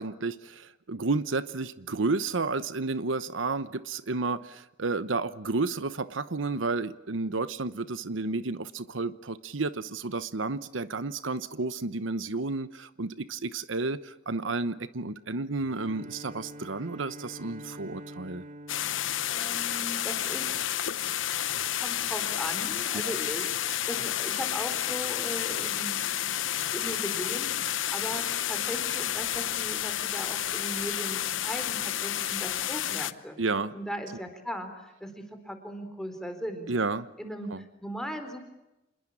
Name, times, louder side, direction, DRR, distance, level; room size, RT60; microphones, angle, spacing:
voice 1, 0.0-18.4 23.0-23.1 33.4-33.7 36.7-37.1 37.5-37.6, right 3 dB, 85° right, 15 dB, 1.0 m, -31 dB
Bowed string instrument, 15.6-20.2, equal, 45° right, 2.0 m, -46 dB
sound 1, 18.7-33.1, left 11 dB, 85° left, 0.9 m, -30 dB
voice 2, 19.3-20.6 21.8-26.4 26.7-33.4 33.7-34.7 35.0-36.7 37.2-38.4, equal, 5° left, 6 dB, 4.2 m, -38 dB
27.0 x 21.5 x 8.7 m, 0.93 s
head